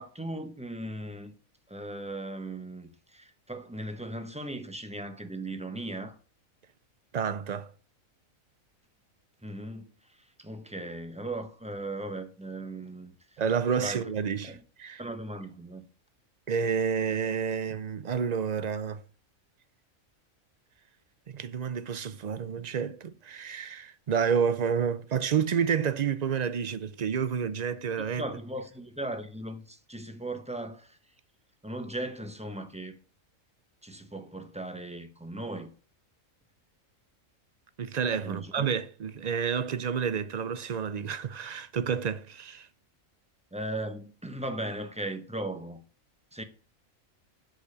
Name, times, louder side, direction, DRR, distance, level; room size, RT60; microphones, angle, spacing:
voice 1, 0.0-1.3 1.7-6.2 9.4-13.4 13.8-14.6 15.0-15.8 28.1-31.0 31.6-33.0 33.8-35.7 38.2-38.7 43.5-45.8 46.3-46.4, right 1 dB, 5° right, 0.9 m, -38 dB
voice 2, 7.1-7.7 13.4-15.0 16.5-19.0 21.3-28.2 37.8-42.7, right 7 dB, 70° right, 0.4 m, -29 dB
8.1 x 6.6 x 6.7 m
omnidirectional pair, 1.4 m